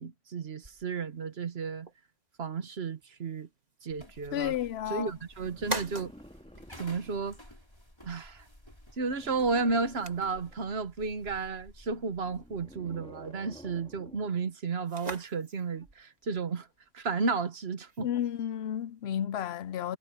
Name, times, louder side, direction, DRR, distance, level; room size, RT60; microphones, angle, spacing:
voice 1, 0.0-1.9 2.4-3.5 3.8-4.5 4.9-6.1 6.8-7.4 8.0-8.4 9.0-16.7 16.9-18.1, right 4 dB, 70° right, 1.4 m, -33 dB
sound 1, 0.6-19.1, right 2 dB, 40° right, 2.0 m, -47 dB
sound 2, 3.9-12.8, left 1 dB, 25° left, 4.9 m, -53 dB
voice 2, 4.3-5.1 18.0-20.0, left 10 dB, 75° left, 0.8 m, -32 dB
sound 3, 5.4-7.4 9.1-10.8 12.1-14.4 15.7-15.9, equal, 5° left, 2.0 m, -52 dB
omnidirectional pair, 1.1 m